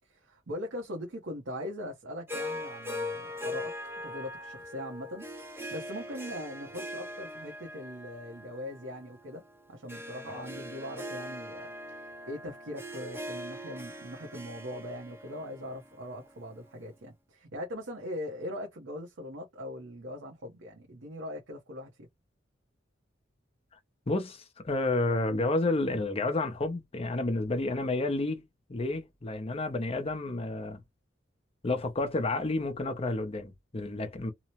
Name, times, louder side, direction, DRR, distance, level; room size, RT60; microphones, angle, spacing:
voice 1, 0.0-3.7 4.0-5.3 5.7-9.4 9.7-11.7 12.3-22.1, left 1 dB, 75° right, 0.8 m, -40 dB
Harp, 2.3-16.7, left 1 dB, 10° right, 0.6 m, -41 dB
voice 2, 24.1-28.4 28.7-30.8 31.6-34.3, left 2 dB, 30° left, 0.6 m, -30 dB
2.9 x 2.0 x 2.9 m
head